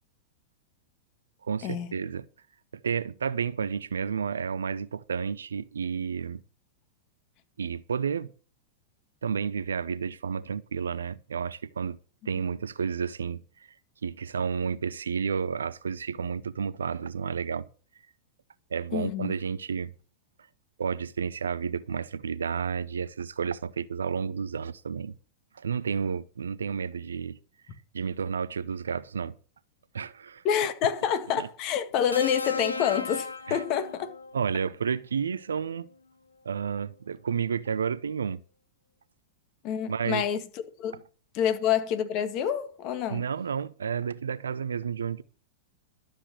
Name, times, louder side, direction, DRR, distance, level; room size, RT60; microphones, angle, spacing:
voice 1, 1.4-2.2 2.8-6.4 7.6-8.3 9.2-12.0 12.3-13.4 14.0-17.7 18.7-19.9 20.8-25.1 25.5-27.4 27.9-29.3 29.9-30.4 31.4-31.5 33.5-33.6 34.3-35.9 36.4-38.4 39.9-40.2 43.1-45.2, right 6 dB, 75° right, 0.6 m, -31 dB
voice 2, 18.9-19.3 30.4-34.1 39.6-40.4 40.8-41.0 41.3-43.3, left 9 dB, 45° left, 1.8 m, -27 dB
sound 1, 32.1-34.4 35.7-35.9, left 3 dB, 85° left, 0.9 m, -35 dB
12.5 x 7.2 x 6.3 m
figure-of-eight pair, 95°, 0 cm